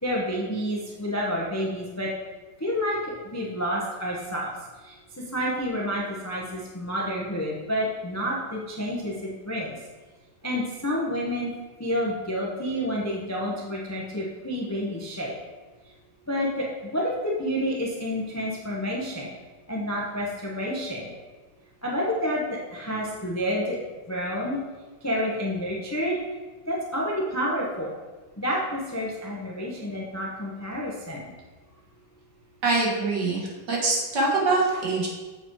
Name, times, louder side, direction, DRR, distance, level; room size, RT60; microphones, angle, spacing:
voice 1, 0.0-2.1 2.6-4.5 4.8-4.9 5.3-9.8 10.4-11.5 11.8-15.3 16.3-16.7 16.9-19.3 19.7-21.1 21.8-23.8 24.1-24.6 25.0-26.2 26.7-27.9 28.4-31.2, equal, 20° left, -3 dB, 0.5 m, -29 dB
voice 2, 32.6-35.1, right 3 dB, 65° right, -3 dB, 2.1 m, -24 dB
7.7 x 4.5 x 4.6 m, 1.3 s
omnidirectional pair, 2.1 m